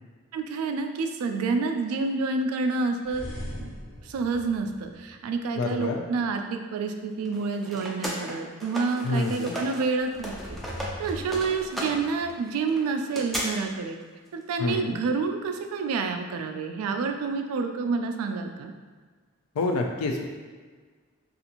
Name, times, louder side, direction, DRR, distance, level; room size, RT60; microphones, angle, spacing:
voice 1, 0.3-3.3 3.6-3.7 4.1-10.3 11.0-14.0 14.3-18.7, right 4 dB, 85° right, 9 dB, 0.3 m, -28 dB
sound 1, 3.0-5.5 10.0-12.3, equal, 25° left, 0.7 m, -41 dB
voice 2, 5.5-6.0 9.0-9.5 14.6-15.0 19.6-20.2, left 2 dB, 85° left, 3 dB, 0.4 m, -27 dB
sound 2, 7.2-9.8 10.1-13.4, equal, ahead, 0.3 m, -36 dB
2.5 x 2.4 x 2.8 m, 1.5 s
head